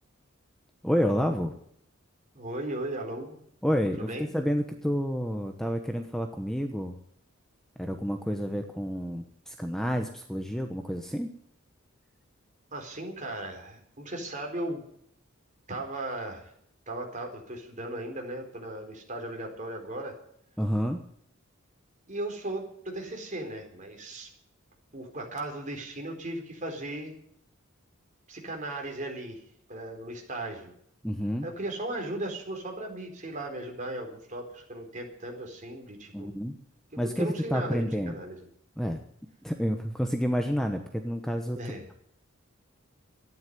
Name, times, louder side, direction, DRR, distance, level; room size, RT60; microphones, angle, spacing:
voice 1, 0.8-1.5 3.6-7.0 7.8-11.3 20.6-21.0 31.0-31.5 36.1-36.6 37.0-38.2 38.8-39.0 39.4-41.6, equal, ahead, 5 dB, 1.0 m, -29 dB
voice 2, 2.3-3.4 4.0-4.3 12.7-14.8 15.7-16.5 16.9-20.1 22.1-24.3 24.9-27.1 28.3-29.4 29.7-30.7 31.4-36.3 36.9-38.4 41.6-41.8, right 1 dB, 40° right, 2 dB, 4.3 m, -37 dB
13.5 x 10.5 x 9.5 m, 0.68 s
head